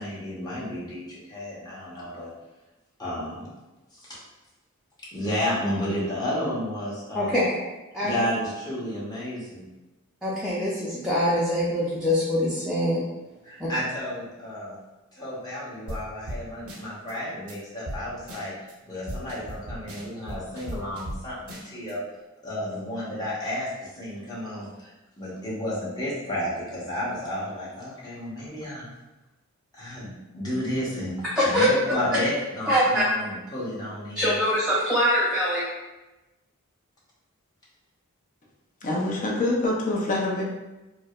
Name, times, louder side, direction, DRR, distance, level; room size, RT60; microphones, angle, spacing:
voice 1, 0.0-2.3 3.0-3.5 3.9-4.2 5.1-7.4 8.0-9.6 13.4-14.8 15.1-18.5 18.8-22.0 22.4-24.9 25.2-28.9 29.7-31.2 31.4-31.6 31.9-34.3, left 1 dB, 20° left, -8 dB, 0.9 m, -32 dB
voice 2, 7.1-7.6 7.9-8.1 10.2-13.0 13.6-13.7 31.3-31.7 32.7-33.0 34.1-35.7, equal, 5° right, -9 dB, 0.5 m, -23 dB
sound 1, 15.9-16.0 16.3-16.4 16.7-17.1 17.5-17.6 17.9-18.0 18.3-18.7 19.1-21.2 21.5-21.9, right 1 dB, 90° right, 0.7 m, -36 dB
voice 3, 38.8-40.4, left 2 dB, 40° left, -2 dB, 0.6 m, -25 dB
4.7 x 2.1 x 2.4 m, 1.1 s
head